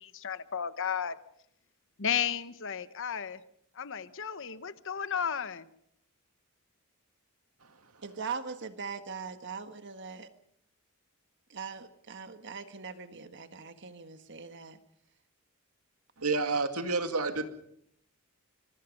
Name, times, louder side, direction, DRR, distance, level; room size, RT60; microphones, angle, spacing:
voice 1, 0.0-1.2 2.0-3.4 3.8-5.7, left 8 dB, 60° left, 13 dB, 1.0 m, -33 dB
voice 2, 8.0-10.3 11.5-14.8, right 5 dB, 55° right, 9 dB, 1.5 m, -41 dB
voice 3, 16.2-17.5, right 3 dB, 90° right, 7 dB, 2.2 m, -29 dB
25.5 x 23.5 x 5.3 m, 0.71 s
head